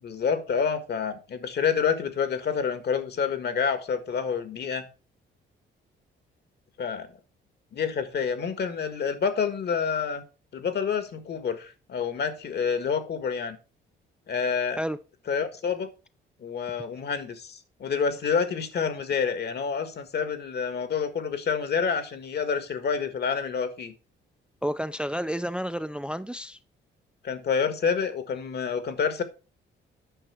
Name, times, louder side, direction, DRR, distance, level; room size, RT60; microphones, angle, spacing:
voice 1, 0.0-4.9 6.8-7.2 7.7-10.2 10.5-13.6 14.3-14.8 15.3-15.9 16.4-23.9 27.2-29.2, left 6 dB, 55° left, 1.6 m, -28 dB
voice 2, 24.6-26.6, equal, 5° right, 0.4 m, -30 dB
8.9 x 5.7 x 4.5 m
cardioid pair, 90°, 20 cm